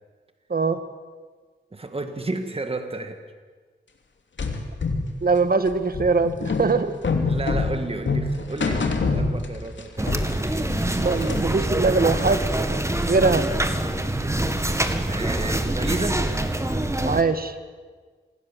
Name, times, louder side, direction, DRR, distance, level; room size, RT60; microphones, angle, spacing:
voice 1, 0.5-0.8 5.2-6.9 11.0-12.4 13.0-13.5 17.0-17.6, right 4 dB, 50° right, 10 dB, 1.6 m, -21 dB
voice 2, 1.7-3.2 7.3-10.2 14.2-14.3 15.1-16.3, right 2 dB, 30° right, 7 dB, 1.9 m, -32 dB
sound 1, 4.4-9.8 10.1-11.6, left 3 dB, 75° left, 2.9 m, -26 dB
sound 2, 10.0-17.2, right 1 dB, 15° right, 1.9 m, -25 dB
27.0 x 19.5 x 7.5 m, 1.5 s
wide cardioid pair, 90°, 19 cm